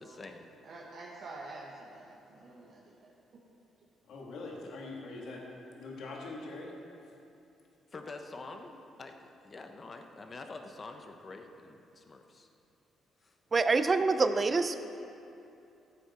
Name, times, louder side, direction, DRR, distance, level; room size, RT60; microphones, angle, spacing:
voice 1, 0.0-0.5 7.9-9.1 9.4-12.5 13.2-13.4, left 3 dB, 35° left, 5 dB, 1.1 m, -46 dB
voice 2, 0.6-3.4, right 2 dB, 60° right, -4 dB, 1.6 m, -48 dB
voice 3, 4.1-5.4 5.7-6.8, left 3 dB, 70° left, -2 dB, 2.0 m, -42 dB
voice 4, 13.5-14.8, right 4 dB, 35° right, 9 dB, 0.6 m, -26 dB
15.0 x 8.1 x 4.3 m, 2.7 s
cardioid pair, 90°, 0 cm